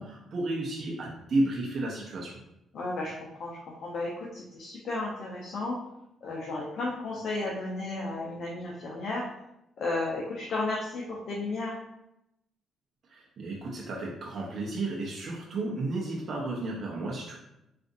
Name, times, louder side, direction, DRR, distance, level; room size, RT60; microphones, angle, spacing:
voice 1, 0.0-2.3 13.1-17.4, right 2 dB, 55° right, -3 dB, 0.6 m, -32 dB
voice 2, 2.7-5.8 6.2-9.2 9.8-11.7, left 2 dB, 60° left, -3 dB, 0.7 m, -33 dB
3.8 x 2.5 x 2.5 m, 0.85 s
cardioid pair, 90°, 0 cm